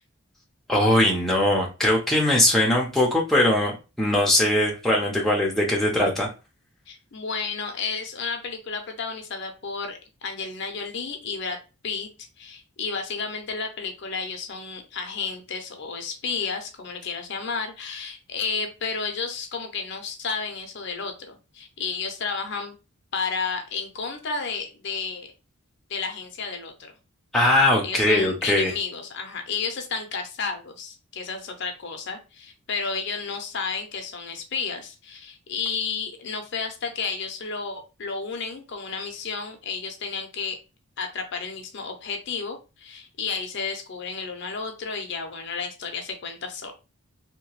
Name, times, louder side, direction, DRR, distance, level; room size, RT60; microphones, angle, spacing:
voice 1, 0.7-6.3 27.3-28.7, left 1 dB, ahead, -2 dB, 0.5 m, -21 dB
voice 2, 6.9-11.6 11.8-12.1 12.4-22.8 23.1-25.3 25.9-26.9 27.8-40.6 41.0-46.7, left 5 dB, 50° left, 5 dB, 0.5 m, -32 dB
2.8 x 2.2 x 2.9 m, 0.30 s
head